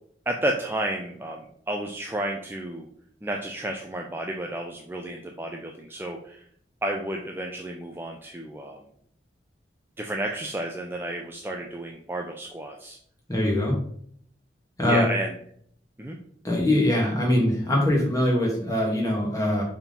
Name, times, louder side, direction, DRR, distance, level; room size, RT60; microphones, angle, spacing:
voice 1, 0.3-2.9 3.2-6.4 6.8-8.8 10.0-13.0 14.8-15.4 16.0-16.2, right 1 dB, 10° right, 1 dB, 0.4 m, -31 dB
voice 2, 13.3-13.8 14.8-15.0 16.4-19.6, left 1 dB, 20° left, -2 dB, 1.7 m, -22 dB
4.9 x 3.7 x 5.2 m, 0.64 s
head